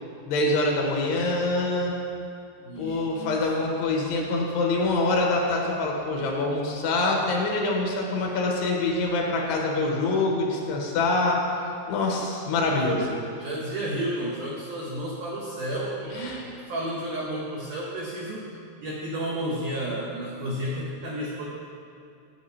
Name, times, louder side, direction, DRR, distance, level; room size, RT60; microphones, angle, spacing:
voice 1, 0.3-2.0 2.8-11.4 11.9-13.1 16.2-16.4, left 2 dB, 85° left, -1 dB, 3.3 m, -25 dB
voice 2, 2.6-3.4 12.7-18.5 18.8-21.4, right 1 dB, 80° right, -4 dB, 1.8 m, -32 dB
14.5 x 7.9 x 2.8 m, 2.4 s
omnidirectional pair, 4.8 m